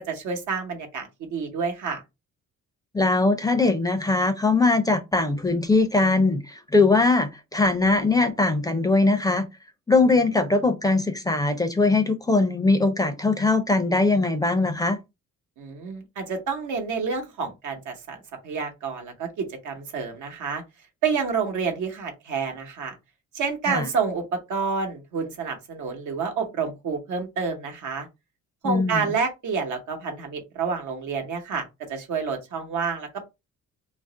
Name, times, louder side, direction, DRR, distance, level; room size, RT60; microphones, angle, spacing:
voice 1, 0.1-2.0 15.6-18.2 18.4-20.6 21.0-23.0 23.3-28.1 28.6-33.3, right 5 dB, 75° right, 1.0 m, -29 dB
voice 2, 2.9-9.5 9.9-15.0 23.6-23.9 28.6-29.1, left 3 dB, 10° left, 0.4 m, -21 dB
2.5 x 2.0 x 3.7 m
cardioid pair, 90°, 30 cm